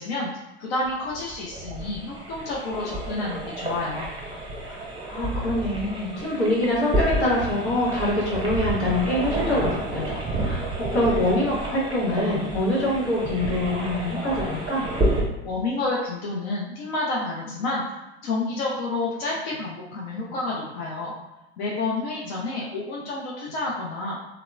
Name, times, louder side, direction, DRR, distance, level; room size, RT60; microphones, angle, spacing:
voice 1, 0.0-4.1 15.4-21.1 21.6-24.2, left 2 dB, 70° left, -4 dB, 0.6 m, -29 dB
sound 1, 0.8-15.2, right 1 dB, 15° right, 0.6 m, -30 dB
voice 2, 5.1-14.9, left 1 dB, 90° left, -6 dB, 1.1 m, -25 dB
2.8 x 2.0 x 2.3 m, 0.98 s
hypercardioid pair, 80°, 33 cm